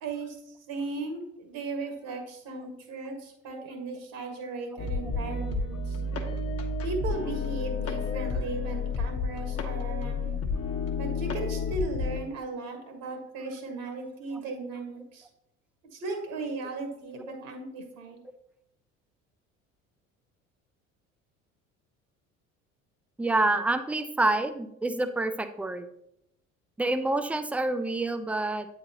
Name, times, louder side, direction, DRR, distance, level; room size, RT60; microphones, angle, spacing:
voice 1, 0.0-6.0 6.8-10.4 10.9-15.3 15.9-18.2, right 3 dB, 60° right, 5 dB, 1.5 m, -36 dB
sound 1, 4.8-12.2, left 4 dB, 35° left, 0.9 m, -31 dB
voice 2, 23.2-25.9 26.8-28.7, right 2 dB, 5° right, 9 dB, 0.3 m, -27 dB
8.5 x 4.0 x 2.8 m, 0.79 s
figure-of-eight pair, 60°, 39 cm